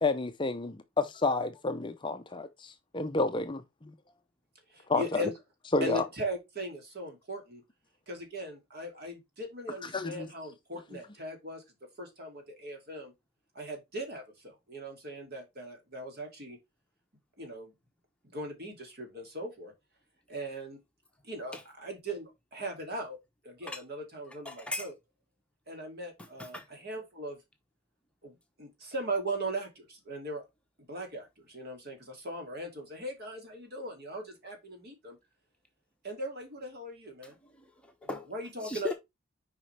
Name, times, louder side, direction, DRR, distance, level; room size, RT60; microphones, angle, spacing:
voice 1, 0.0-3.9 4.9-5.3 5.7-6.1 9.8-10.3, left 3 dB, 20° left, 0.5 m, -30 dB
voice 2, 4.7-5.3 5.8-7.6 8.1-11.6 12.0-13.1 13.5-16.6 17.4-17.7 18.3-19.7 20.3-20.8 21.2-23.2 23.4-24.9 25.7-27.4 28.2-28.3 28.6-30.4 30.9-35.2 36.0-37.4 38.3-38.9, right 1 dB, 50° right, 2.6 m, -39 dB
voice 3, 24.3-24.9 26.2-26.7 37.4-38.3 38.6-38.9, left 2 dB, 5° left, 1.0 m, -39 dB
6.9 x 5.1 x 3.3 m
head